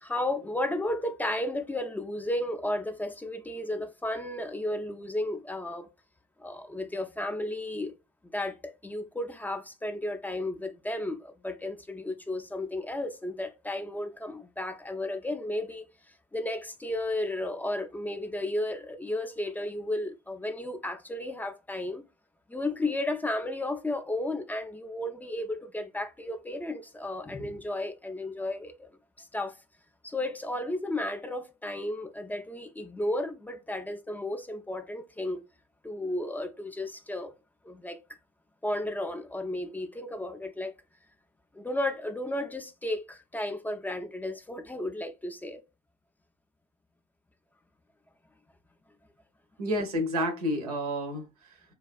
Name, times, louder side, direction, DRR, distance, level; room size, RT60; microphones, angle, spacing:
voice 1, 0.0-5.9 6.4-7.9 8.3-22.0 22.5-28.9 29.2-29.5 30.0-35.4 35.8-37.3 37.6-38.0 38.6-40.7 41.5-45.6, left 1 dB, 10° left, 0.3 m, -33 dB
voice 2, 49.6-51.7, equal, 85° right, 0.6 m, -30 dB
2.4 x 2.2 x 2.4 m
hypercardioid pair, 55°, 19 cm